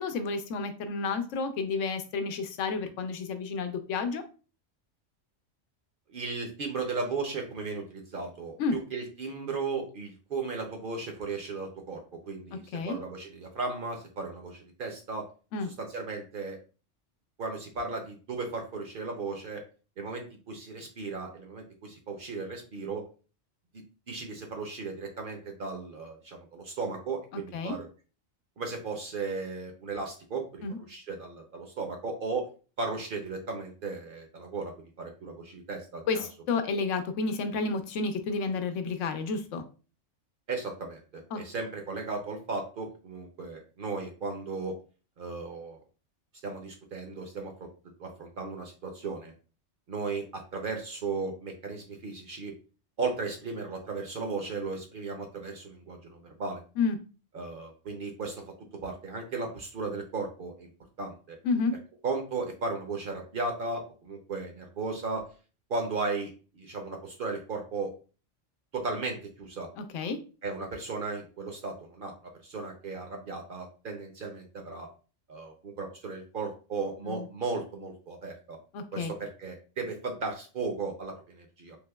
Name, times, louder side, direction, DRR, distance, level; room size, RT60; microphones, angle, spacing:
voice 1, 0.0-4.2 8.6-8.8 12.7-13.0 15.5-15.7 27.5-27.8 30.6-30.8 36.1-36.2 36.5-39.6 41.3-41.4 56.8-57.0 61.4-61.7 69.8-70.2 77.0-77.3 78.7-79.1, left 4 dB, 85° left, 8 dB, 0.9 m, -30 dB
voice 2, 6.1-12.0 12.3-15.3 15.6-16.6 17.4-19.6 20.0-23.0 24.1-27.9 28.6-32.5 32.8-36.3 40.5-44.7 45.2-45.8 46.4-47.7 48.0-49.3 49.9-52.5 53.0-56.6 57.3-58.4 58.8-60.7 61.0-61.4 62.0-65.3 65.7-67.9 68.7-69.7 70.4-74.9 75.3-78.6 78.9-81.8, right 4 dB, 55° right, 3 dB, 0.7 m, -36 dB
3.4 x 2.9 x 2.2 m, 0.36 s
omnidirectional pair, 1.2 m